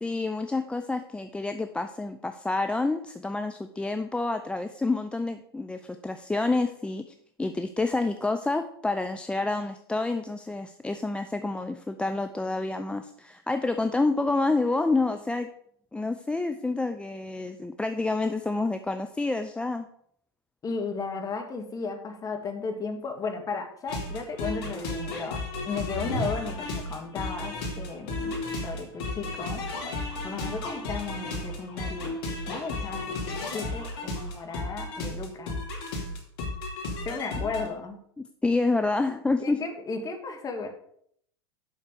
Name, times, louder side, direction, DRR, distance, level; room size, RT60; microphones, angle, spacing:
voice 1, 0.0-7.1 7.4-15.5 15.9-19.9 38.4-39.6, left 3 dB, 10° left, 7 dB, 0.5 m, -28 dB
voice 2, 20.6-29.6 30.2-32.2 32.5-35.6 37.0-38.0 39.4-40.7, left 4 dB, 25° left, 5 dB, 1.9 m, -35 dB
sound 1, 23.9-37.7, left 2 dB, 60° left, 2.8 m, -33 dB
7.5 x 5.9 x 6.6 m, 0.67 s
hypercardioid pair, 95°, 14 cm